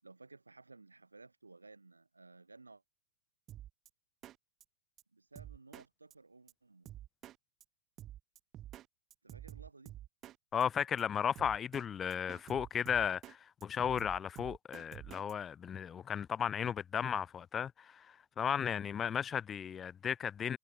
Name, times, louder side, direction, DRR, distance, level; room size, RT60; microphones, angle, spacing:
voice 1, 0.0-2.8 5.1-6.9 9.2-10.0, right 3 dB, 80° right, 4.0 m, -57 dB
Drum kit, 3.5-3.9 4.2-4.4 4.6-4.7 5.0-5.1 5.4-5.9 6.1-6.2 6.5-6.6 6.9-7.4 7.6-7.7 8.0-8.9 9.1-10.4 10.6-10.7 11.0-11.1 11.4-11.9 12.1-13.4 13.6-15.3, right 13 dB, 30° right, 3.8 m, -49 dB
voice 2, 10.5-20.6, left 8 dB, 20° left, 0.4 m, -35 dB
figure-of-eight pair, 100°, 0 cm